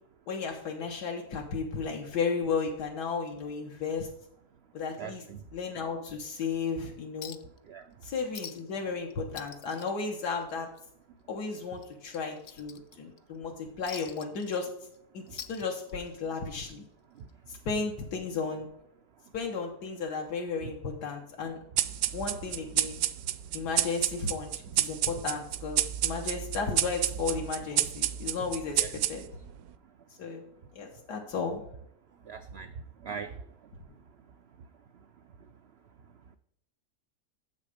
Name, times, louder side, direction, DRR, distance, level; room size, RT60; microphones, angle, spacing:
voice 1, 0.3-4.1 4.7-5.2 5.5-7.4 8.0-10.7 11.3-14.7 15.1-16.8 17.5-18.7 19.3-21.6 22.1-23.0 23.5-28.8 29.1-29.2 30.2-30.4 30.7-31.6, left 5 dB, 80° left, 0 dB, 1.7 m, -34 dB
voice 2, 5.0-5.4 7.7-7.9 17.1-17.3 28.8-28.9 32.2-32.7 33.0-33.4, right 6 dB, 85° right, 9 dB, 0.5 m, -40 dB
Chink clink, 7.2-7.6 7.9-8.0 8.3-8.8 9.1-10.8 11.1-11.3 11.8-13.2 13.9-15.0 15.3-16.2 17.3-17.4, left 8 dB, 60° left, 0.7 m, -45 dB
sound 1, 21.8-29.5, right 12 dB, 70° right, 1.0 m, -30 dB
7.3 x 6.5 x 4.9 m, 0.73 s
omnidirectional pair, 1.7 m